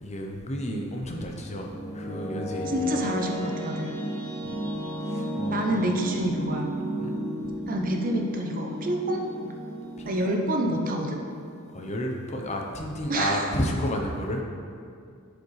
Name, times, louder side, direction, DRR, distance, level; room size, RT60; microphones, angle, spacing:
voice 1, 0.0-3.0 4.4-4.6 5.0-5.8 7.0-7.1 10.0-10.4 11.7-14.4, equal, 30° left, 1 dB, 0.7 m, -31 dB
sound 1, 1.4-12.1, equal, 10° left, 1.3 m, -34 dB
voice 2, 2.7-3.9 5.5-6.7 7.7-9.2 10.1-11.2 13.1-13.5, right 1 dB, 40° right, 2 dB, 0.7 m, -27 dB
11.0 x 5.0 x 3.2 m, 2.3 s
head